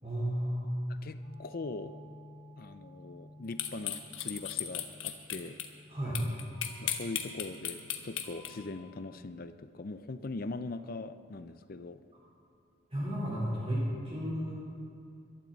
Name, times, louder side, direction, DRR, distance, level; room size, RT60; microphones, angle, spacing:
voice 1, 0.0-0.9 5.9-6.2 12.9-14.5, equal, 30° right, -7 dB, 3.7 m, -33 dB
voice 2, 1.0-2.0 2.6-5.6 6.8-12.0, left 3 dB, 45° left, 11 dB, 0.5 m, -41 dB
sound 1, 1.2-9.2, left 1 dB, 25° left, 1.6 m, -54 dB
sound 2, 3.6-5.7 6.1-8.5, left 11 dB, 65° left, 1.2 m, -34 dB
22.0 x 12.5 x 4.1 m, 2.4 s
head